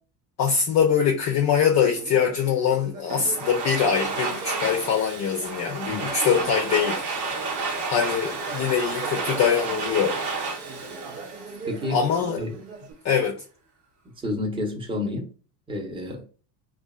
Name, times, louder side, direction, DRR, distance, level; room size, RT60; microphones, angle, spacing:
voice 1, 0.4-7.1 7.9-10.2 11.9-12.4 13.0-13.4, left 7 dB, 35° left, 0.4 m, -23 dB
Conversation, 1.8-7.6 8.0-12.9, right 4 dB, 80° right, 0.8 m, -41 dB
Domestic sounds home sounds, 3.1-12.0, right 4 dB, 50° right, 0.9 m, -31 dB
voice 2, 11.6-12.0 12.4-12.6 14.2-15.3 15.7-16.2, left 2 dB, 10° right, 0.7 m, -30 dB
2.6 x 2.4 x 2.3 m
hypercardioid pair, 70°, 50 cm